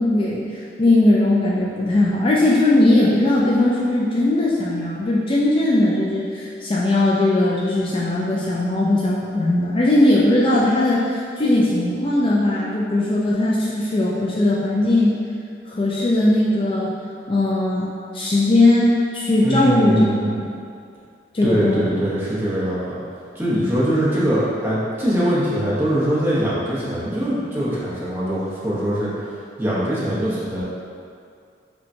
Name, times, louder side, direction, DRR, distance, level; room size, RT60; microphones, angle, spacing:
voice 1, 0.0-15.1 15.7-16.9 17.3-17.9 18.1-20.0 20.4-20.5 21.3-22.0, left 1 dB, 30° left, -5 dB, 0.3 m, -19 dB
voice 2, 19.4-20.3 21.4-23.0 23.3-29.3 29.6-30.6, equal, 10° right, -9 dB, 0.8 m, -22 dB
5.7 x 2.2 x 2.6 m, 2.4 s
head